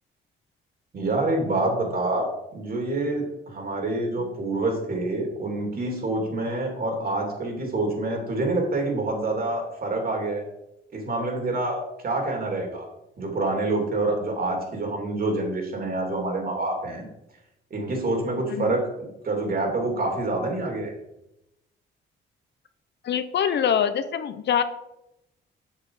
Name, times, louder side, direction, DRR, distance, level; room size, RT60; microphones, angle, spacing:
voice 1, 0.9-10.4 10.9-11.8 12.0-12.8 13.2-17.1 17.7-20.9, right 2 dB, 50° right, 1 dB, 2.9 m, -27 dB
voice 2, 23.0-24.6, left 8 dB, 60° left, 10 dB, 0.7 m, -24 dB
7.4 x 6.4 x 4.9 m, 0.88 s
cardioid pair, 90°, 20 cm